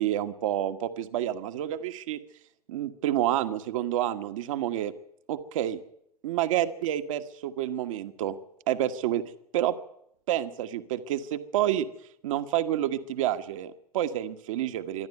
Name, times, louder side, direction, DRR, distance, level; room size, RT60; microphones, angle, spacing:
voice 1, 0.0-2.2 2.7-4.9 5.3-5.8 6.2-8.4 8.7-9.2 9.5-9.7 10.3-11.9 12.2-15.1, right 12 dB, 55° right, 9 dB, 1.4 m, -29 dB
25.0 x 11.5 x 9.6 m, 0.76 s
figure-of-eight pair, 90°, 20 cm